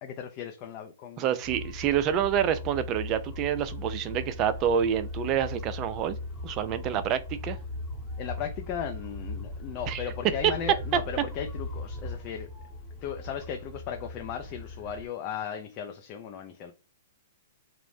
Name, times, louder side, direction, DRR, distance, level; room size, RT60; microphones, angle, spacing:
voice 1, 0.0-1.3 8.2-12.5 13.0-16.7, left 8 dB, 40° left, 0.4 m, -36 dB
voice 2, 1.2-6.2 6.4-7.6 9.9-10.0, right 9 dB, 30° right, 0.3 m, -28 dB
sound 1, 1.4-15.1, left 2 dB, 10° left, 0.9 m, -39 dB
2.5 x 2.0 x 3.2 m
hypercardioid pair, 130°, 0 cm